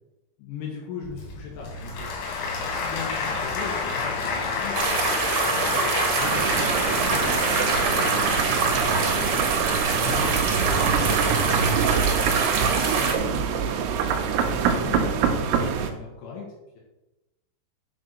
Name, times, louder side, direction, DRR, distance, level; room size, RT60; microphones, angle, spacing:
voice 1, 0.4-2.1 2.5-7.4 8.0-8.8 9.1-13.8 14.4-16.5 16.7-16.8, left 5 dB, 70° left, -3 dB, 4.2 m, -39 dB
Applause / Crowd, 1.0-9.8, left 4 dB, 90° left, 4.9 m, -29 dB
sound 1, 4.7-13.1, right 5 dB, 65° right, 2.0 m, -25 dB
sound 2, 6.2-15.9, right 6 dB, 85° right, 2.3 m, -25 dB
9.4 x 4.7 x 6.8 m, 0.97 s
omnidirectional pair, 5.9 m